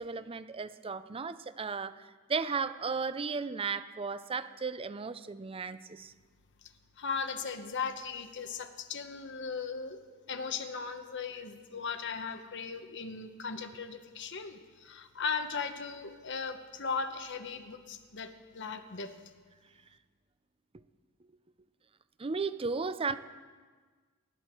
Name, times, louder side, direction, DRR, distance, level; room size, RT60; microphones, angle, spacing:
voice 1, 0.0-2.0 2.3-6.1 22.2-23.2, right 4 dB, 25° right, 13 dB, 0.5 m, -35 dB
voice 2, 7.0-10.0 10.3-19.1, left 5 dB, 60° left, 7 dB, 1.0 m, -37 dB
19.0 x 11.0 x 4.5 m, 1.5 s
head